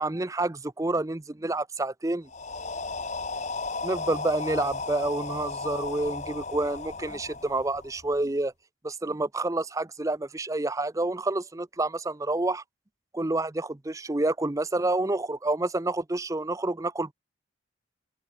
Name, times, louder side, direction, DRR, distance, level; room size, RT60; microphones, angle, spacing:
voice 1, 0.0-2.3 3.8-8.5 8.8-12.6 13.1-17.1, right 2 dB, 15° right, 0.5 m, -28 dB
sound 1, 2.3-8.2, left 3 dB, 35° left, 2.6 m, -35 dB
open air
head